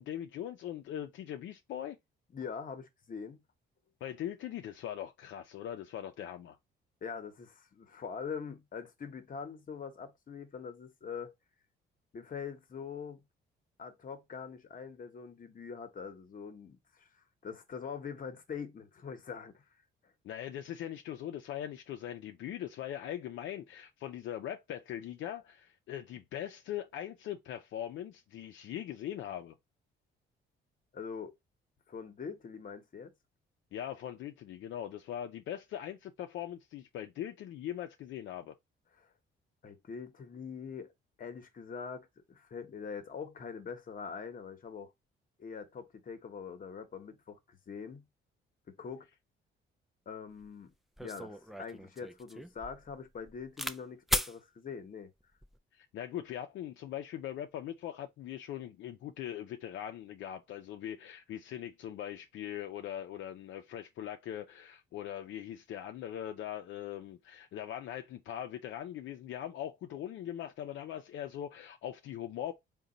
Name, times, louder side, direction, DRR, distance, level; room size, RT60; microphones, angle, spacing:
voice 1, 0.0-2.0 4.0-6.6 20.2-29.6 33.7-38.5 55.7-72.5, left 11 dB, 75° left, 0.5 m, -41 dB
voice 2, 2.3-3.4 7.0-11.3 12.1-13.2 13.8-19.6 30.9-31.3 31.9-33.1 39.0-39.1 39.6-40.9 41.2-44.9 45.4-48.0 48.8-49.1 50.1-50.7 51.0-55.1, left 6 dB, 45° left, 0.9 m, -43 dB
sound 1, 50.4-50.5 51.0-53.8 54.1-54.4 55.2-55.6, equal, ahead, 0.3 m, -37 dB
3.8 x 2.2 x 3.9 m
cardioid pair, 90°, 20 cm